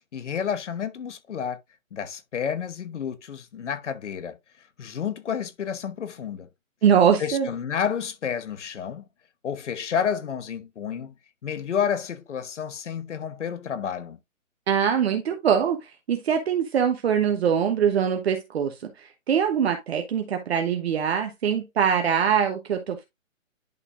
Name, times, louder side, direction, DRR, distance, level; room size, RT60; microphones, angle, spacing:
voice 1, 0.1-1.6 1.9-4.4 4.8-6.5 7.2-9.0 9.4-11.1 11.4-14.2, left 7 dB, 60° left, 1.2 m, -30 dB
voice 2, 6.8-7.5 14.7-23.0, right 8 dB, 50° right, 1.1 m, -23 dB
10.5 x 4.1 x 2.6 m
hypercardioid pair, 150°, 40 cm